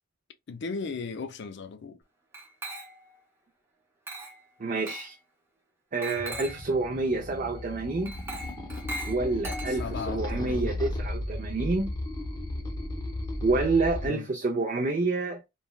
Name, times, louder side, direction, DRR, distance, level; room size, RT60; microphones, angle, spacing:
voice 1, 0.5-2.0 9.7-10.7 14.0-14.3, left 4 dB, 60° left, 0.4 m, -36 dB
Glass, 2.3-3.2 4.1-4.4 4.9-5.2 6.0-6.7 8.0-10.1, right 1 dB, 10° right, 0.8 m, -39 dB
voice 2, 4.6-5.2 5.9-8.1 9.1-11.9 13.4-15.5, right 3 dB, 40° right, 0.5 m, -28 dB
sound 1, 6.2-14.1, left 1 dB, 20° left, 0.7 m, -35 dB
3.2 x 2.2 x 2.2 m
head